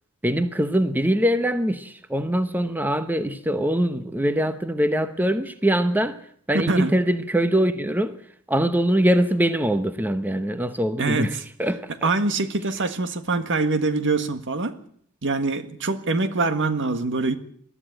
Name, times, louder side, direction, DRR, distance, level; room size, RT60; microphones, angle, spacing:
voice 1, 0.2-6.2 6.5-8.1 8.5-12.1, right 1 dB, 10° right, 0.9 m, -23 dB
voice 2, 11.0-11.4 12.0-14.8 15.2-17.4, right 3 dB, 60° right, 1.7 m, -24 dB
22.0 x 13.5 x 9.0 m
head